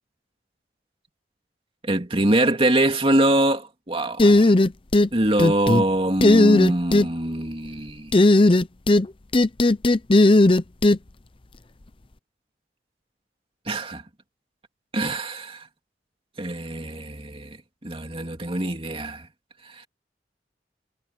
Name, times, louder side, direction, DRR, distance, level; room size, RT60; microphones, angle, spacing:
voice 1, 1.8-4.5 5.1-8.1 13.7-14.0 14.9-15.7 16.4-17.6 17.8-19.3 19.6-19.9, right 1 dB, 30° right, 2.7 m, -24 dB
sound 1, 4.2-5.1 5.4-5.8 6.2-7.1 8.1-9.1 9.3-11.0, left 2 dB, 30° left, 0.7 m, -16 dB
head